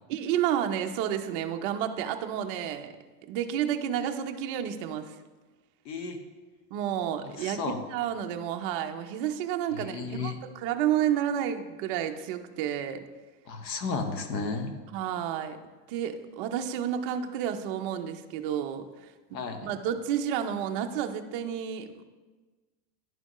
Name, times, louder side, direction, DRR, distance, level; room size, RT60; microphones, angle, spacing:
voice 1, 0.1-3.0 3.3-5.2 6.7-13.0 14.9-15.6 15.9-22.1, right 9 dB, 35° right, 6 dB, 0.4 m, -31 dB
voice 2, 5.8-6.2 7.4-7.8 9.7-10.3 13.5-14.7 19.3-19.7, left 4 dB, 85° left, 6 dB, 1.1 m, -33 dB
10.5 x 4.1 x 3.0 m, 1.3 s
supercardioid pair, 135°, 49 cm